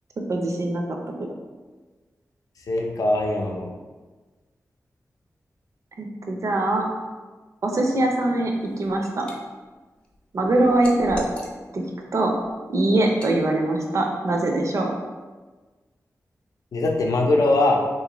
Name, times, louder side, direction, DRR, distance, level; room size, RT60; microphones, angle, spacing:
voice 1, 0.3-1.0 6.0-6.8 7.6-8.5 8.8-9.3 10.3-11.2 11.7-11.8 12.1-12.3 12.7-14.9, right 2 dB, 60° right, 2 dB, 0.5 m, -22 dB
voice 2, 2.7-3.7 16.7-17.8, left 2 dB, 75° left, 1 dB, 0.5 m, -21 dB
Liquid, 8.5-9.4 9.8-11.9 12.3-12.5 13.1-13.4, equal, 15° left, 0.5 m, -39 dB
3.6 x 2.5 x 2.9 m, 1.3 s
wide cardioid pair, 130°, 6 cm